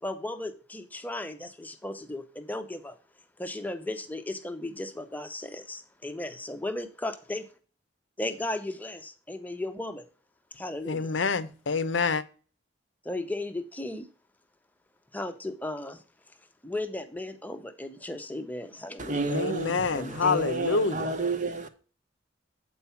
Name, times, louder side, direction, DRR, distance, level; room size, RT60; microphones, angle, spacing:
voice 1, 0.0-3.0 3.4-7.5 8.2-10.0 10.5-11.1 13.0-14.1 15.1-16.0 16.6-19.2 19.9-20.3, left 1 dB, 10° left, 0.8 m, -36 dB
voice 2, 10.9-12.2 19.3-21.1, left 4 dB, 75° left, 0.7 m, -27 dB
voice 3, 19.0-21.7, right 3 dB, 40° right, 0.9 m, -31 dB
8.5 x 4.6 x 5.7 m
head